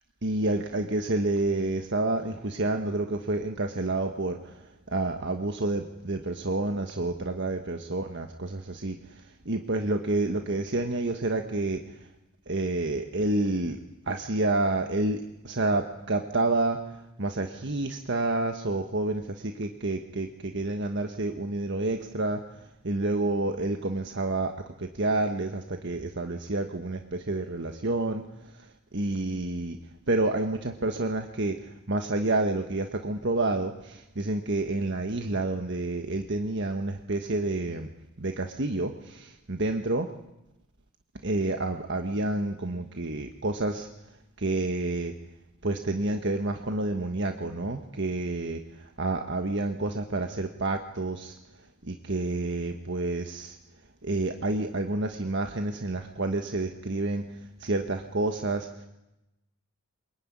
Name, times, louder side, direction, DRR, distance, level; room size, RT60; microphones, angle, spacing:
voice 1, 0.2-12.1 12.5-13.8 14.1-29.8 30.1-37.9 38.2-40.1 41.2-43.9 44.4-45.1 45.6-53.6 54.0-58.9, right 2 dB, 55° right, 5 dB, 1.5 m, -29 dB
25.5 x 22.0 x 9.8 m, 0.94 s
head